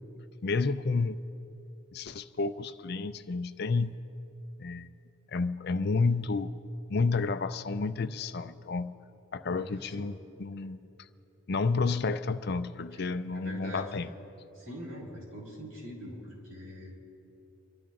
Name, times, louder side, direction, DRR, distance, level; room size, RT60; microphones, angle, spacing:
voice 1, 0.4-1.2 1.9-4.0 4.6-4.9 5.3-6.5 6.9-8.9 9.3-10.8 11.5-14.1, left 4 dB, 50° left, 11 dB, 0.5 m, -30 dB
voice 2, 9.6-10.1 12.9-13.0 13.3-13.9 14.5-16.9, equal, 75° right, -3 dB, 4.2 m, -43 dB
27.0 x 12.0 x 3.8 m, 2.9 s
head